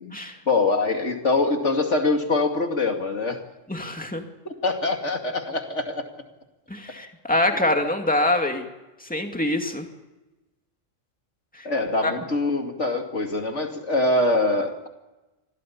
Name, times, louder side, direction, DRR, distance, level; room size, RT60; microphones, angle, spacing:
voice 1, 0.5-3.4 4.4-6.0 11.6-14.9, left 2 dB, 65° left, 4 dB, 2.8 m, -24 dB
voice 2, 3.7-4.2 6.7-8.7 9.1-9.9 12.0-12.1, left 1 dB, 5° left, 4 dB, 2.4 m, -24 dB
25.5 x 17.0 x 8.6 m, 1.1 s
omnidirectional pair, 1.3 m